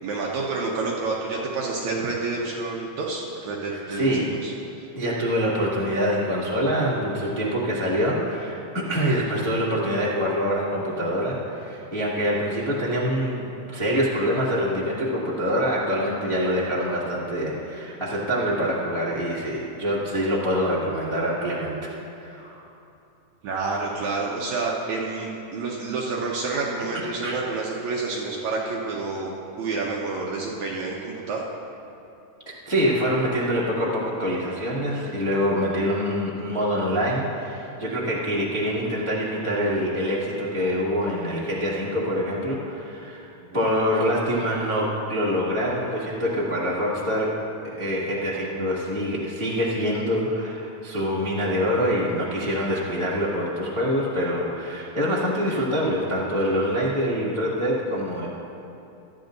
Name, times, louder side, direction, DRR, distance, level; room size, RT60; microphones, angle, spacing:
voice 1, 0.0-4.1 4.4-4.9 23.4-29.3 29.6-31.4 43.4-43.7, right 3 dB, 70° right, -3 dB, 1.9 m, -29 dB
voice 2, 3.7-4.3 4.9-21.7 22.2-22.6 27.2-27.4 32.6-43.3 43.5-47.3 47.6-58.3, equal, 15° left, -7 dB, 0.9 m, -25 dB
17.5 x 13.0 x 2.6 m, 2.7 s
omnidirectional pair, 4.1 m